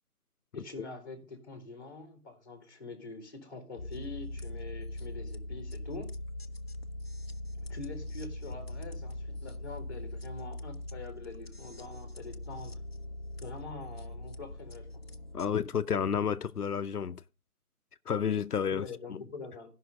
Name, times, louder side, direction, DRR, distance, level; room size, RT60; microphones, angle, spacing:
voice 1, 0.5-6.1 7.7-12.8 13.4-15.0 18.7-19.7, left 3 dB, 15° left, 1.6 m, -45 dB
sound 1, 3.8-15.5, left 1 dB, 45° left, 0.7 m, -41 dB
voice 2, 15.3-17.2 18.1-18.9 19.1-19.2, left 7 dB, 85° left, 0.7 m, -30 dB
14.0 x 5.7 x 5.0 m
figure-of-eight pair, 165°, 44 cm